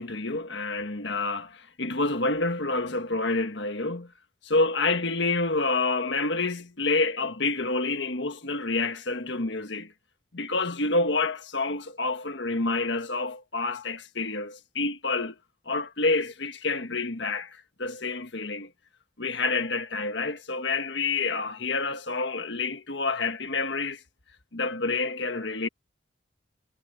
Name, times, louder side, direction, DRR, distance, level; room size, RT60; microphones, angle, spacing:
voice 1, 0.0-4.1 4.4-9.9 10.3-15.4 15.6-18.7 19.2-24.0 24.5-25.7, left 3 dB, 70° left, 1.6 m, -28 dB
head